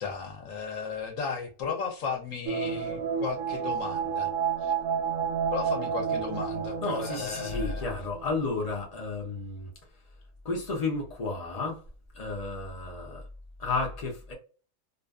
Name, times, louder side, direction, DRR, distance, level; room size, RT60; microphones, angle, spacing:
voice 1, 0.0-4.3 4.6-4.7 5.5-7.9, left 6 dB, 65° left, 0.9 m, -35 dB
sound 1, 2.5-8.4 8.7-8.8, right 7 dB, 70° right, 0.8 m, -31 dB
voice 2, 6.8-9.7 10.4-11.8 12.1-13.2 13.6-14.3, left 3 dB, 85° left, 0.3 m, -32 dB
2.5 x 2.4 x 2.2 m
omnidirectional pair, 1.6 m